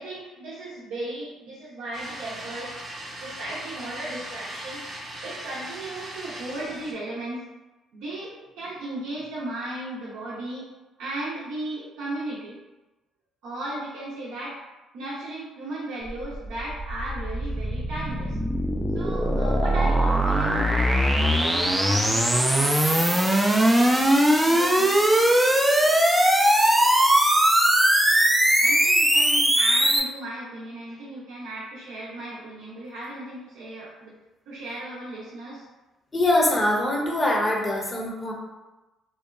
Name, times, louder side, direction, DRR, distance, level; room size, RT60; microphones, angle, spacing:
voice 1, 0.0-2.7 3.2-4.8 5.2-7.4 7.9-10.7 11.0-12.6 13.4-14.6 14.9-18.4 18.9-24.2 24.5-25.0 28.6-34.1 34.5-35.7, right 1 dB, 75° right, -7 dB, 0.5 m, -36 dB
sound 1, 1.9-6.9, right 1 dB, 50° right, 0.8 m, -39 dB
sound 2, 16.1-30.0, right 1 dB, 10° right, 0.4 m, -20 dB
voice 2, 36.1-38.3, left 1 dB, 30° left, -2 dB, 0.8 m, -23 dB
2.8 x 2.1 x 2.3 m, 1.1 s
hypercardioid pair, 55°, 0 cm